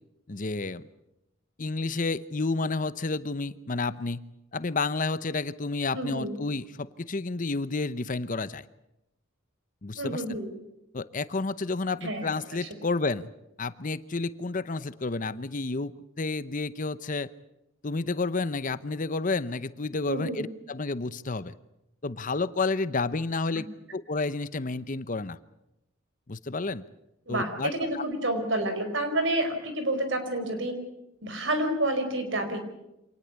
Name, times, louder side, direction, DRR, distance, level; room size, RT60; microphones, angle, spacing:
voice 1, 0.3-0.8 1.6-4.2 4.5-8.6 9.8-10.2 10.9-13.3 13.6-15.9 16.2-17.3 17.8-21.5 22.0-23.7 23.9-25.4 26.3-26.8 27.3-28.0, left 3 dB, 40° left, 15 dB, 0.8 m, -30 dB
voice 2, 5.9-6.3 9.9-10.5 12.0-12.3 20.1-20.4 23.5-23.6 27.3-30.7 31.2-32.6, right 1 dB, 60° right, 7 dB, 4.8 m, -29 dB
26.0 x 19.0 x 8.2 m, 0.87 s
head